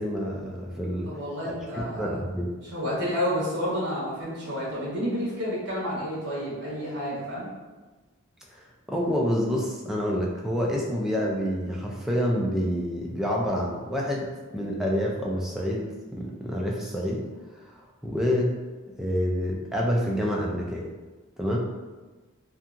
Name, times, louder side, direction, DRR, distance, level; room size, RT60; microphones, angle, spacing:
voice 1, 0.0-1.1 1.7-2.5 8.5-8.6 8.9-17.2 17.8-18.5 19.0-20.9 21.4-21.6, equal, ahead, -3 dB, 0.3 m, -27 dB
voice 2, 1.0-2.1 2.7-7.5, equal, 55° right, -7 dB, 1.1 m, -30 dB
2.7 x 2.3 x 2.4 m, 1.2 s
head